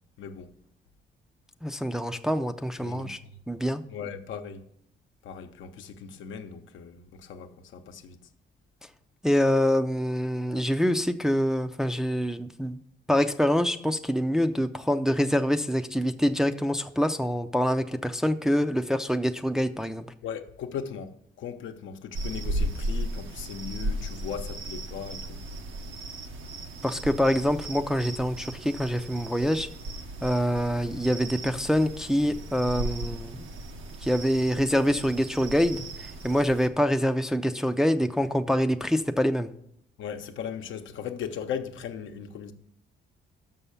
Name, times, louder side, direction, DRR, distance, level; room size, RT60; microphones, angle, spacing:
voice 1, 0.2-0.5 2.8-3.3 3.9-4.7 5.2-8.2 20.2-25.4 40.0-42.5, left 7 dB, 75° left, 0.8 m, -38 dB
voice 2, 1.6-3.2 3.5-3.8 9.2-12.8 13.1-20.0 26.8-29.7 30.2-33.4 34.0-39.5, equal, 5° right, 0.4 m, -25 dB
sound 1, 22.1-36.7, right 1 dB, 80° right, 1.0 m, -36 dB
6.4 x 5.6 x 7.0 m
cardioid pair, 90°, 20 cm